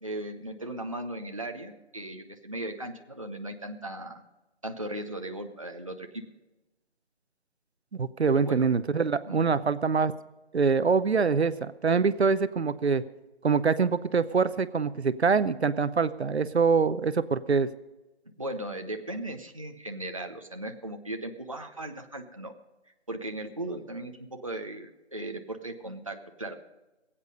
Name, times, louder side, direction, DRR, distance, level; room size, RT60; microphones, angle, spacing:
voice 1, 0.0-4.2 4.6-6.2 8.3-8.7 9.2-9.5 18.4-22.5 23.1-26.5, right 1 dB, 30° right, 5 dB, 0.7 m, -37 dB
voice 2, 7.9-10.1 10.5-13.0 13.4-17.7, right 5 dB, 70° right, 14 dB, 0.7 m, -24 dB
21.0 x 8.5 x 5.3 m, 1.1 s
figure-of-eight pair, 180°, 34 cm